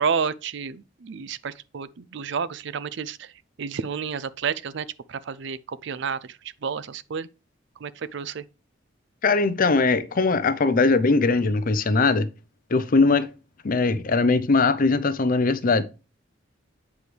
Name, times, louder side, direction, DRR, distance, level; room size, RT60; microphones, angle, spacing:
voice 1, 0.0-3.3 3.6-7.3 7.8-8.4, right 6 dB, 65° right, 0.5 m, -30 dB
voice 2, 9.2-12.3 12.7-13.3 13.6-15.8, left 3 dB, 45° left, 0.6 m, -20 dB
8.1 x 4.8 x 3.2 m
head